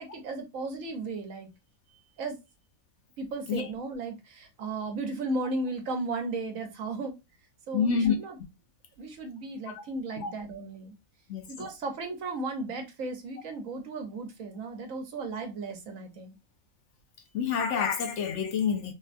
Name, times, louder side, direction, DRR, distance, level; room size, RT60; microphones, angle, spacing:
voice 1, 0.0-1.5 2.2-2.4 3.2-7.2 7.7-8.4 9.0-10.9 11.5-16.3, right 3 dB, 70° right, 1.2 m, -35 dB
voice 2, 7.7-8.1 9.7-9.8 10.2-10.3 11.3-11.7 17.3-18.9, left 6 dB, 65° left, 0.9 m, -28 dB
3.4 x 2.2 x 2.5 m
omnidirectional pair, 1.4 m